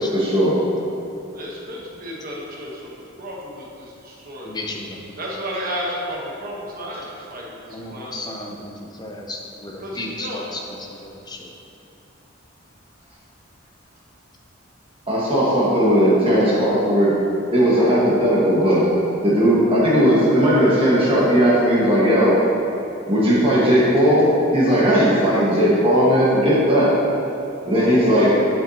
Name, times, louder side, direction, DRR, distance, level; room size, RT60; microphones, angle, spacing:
voice 1, 0.1-0.6 15.1-17.1 17.5-18.8 19.2-22.4 23.1-26.9 27.6-28.4, equal, 25° right, -7 dB, 1.6 m, -17 dB
voice 2, 1.3-4.5 5.2-8.2 9.8-10.4, equal, 45° right, -3 dB, 1.2 m, -33 dB
voice 3, 4.4-5.0 7.7-10.4 11.0-11.4, left 2 dB, 20° left, 0 dB, 0.7 m, -34 dB
8.4 x 7.1 x 2.9 m, 2.7 s
head